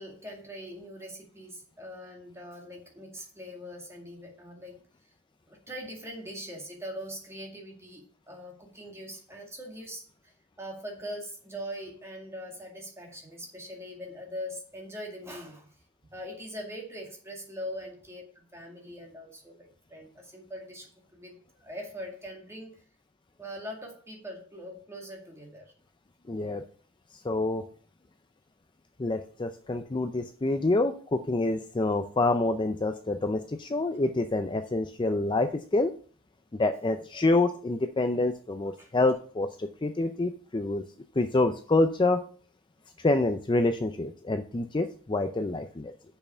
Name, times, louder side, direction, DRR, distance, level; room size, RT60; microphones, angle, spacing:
voice 1, 0.0-4.8 5.5-15.7 16.1-22.8 23.4-25.7 29.6-29.8 36.8-37.0 38.8-38.9, equal, 15° right, 0 dB, 2.2 m, -42 dB
voice 2, 26.3-26.6 27.2-27.6 29.0-35.9 36.6-40.8 41.2-42.2 43.0-45.9, left 2 dB, 20° left, 7 dB, 0.5 m, -27 dB
6.7 x 5.6 x 6.8 m, 0.43 s
head